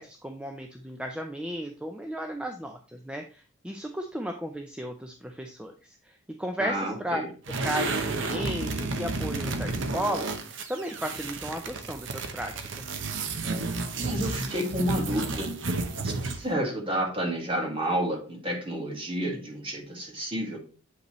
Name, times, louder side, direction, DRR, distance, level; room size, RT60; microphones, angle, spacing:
voice 1, 0.0-5.7 6.0-6.1 6.4-7.2 7.6-10.3 10.7-13.0, equal, 5° right, 4 dB, 0.5 m, -34 dB
voice 2, 6.6-7.3 14.0-15.5 16.0-20.6, right 1 dB, 25° right, 0 dB, 1.9 m, -30 dB
sound 1, 7.4-16.5, right 3 dB, 70° right, 0.8 m, -32 dB
8.1 x 5.3 x 3.1 m, 0.38 s
head